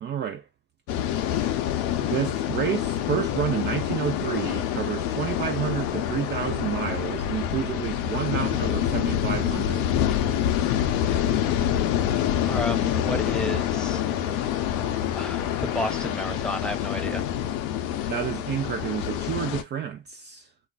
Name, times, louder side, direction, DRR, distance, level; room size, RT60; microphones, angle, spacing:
voice 1, 0.0-0.4 2.0-9.9 18.1-20.5, right 9 dB, 35° right, 0.4 m, -30 dB
sound 1, 0.9-19.6, left 10 dB, 80° left, 0.6 m, -26 dB
voice 2, 12.5-14.0 15.1-17.2, left 1 dB, ahead, 0.8 m, -31 dB
2.4 x 2.1 x 3.8 m
supercardioid pair, 75°, 30 cm